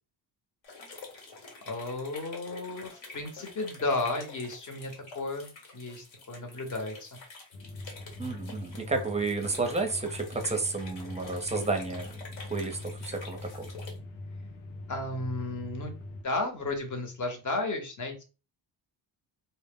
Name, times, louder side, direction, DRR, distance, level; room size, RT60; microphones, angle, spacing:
sound 1, 0.6-14.0, left 3 dB, 70° left, 1.1 m, -48 dB
voice 1, 1.6-7.1 14.9-15.9 16.2-18.2, left 2 dB, 40° left, 4 dB, 0.9 m, -33 dB
sound 2, 7.5-16.2, left 2 dB, 90° left, 0.6 m, -42 dB
voice 2, 8.2-13.7, right 3 dB, 15° right, 5 dB, 0.5 m, -31 dB
2.0 x 2.0 x 3.5 m, 0.33 s
cardioid pair, 95°, 47 cm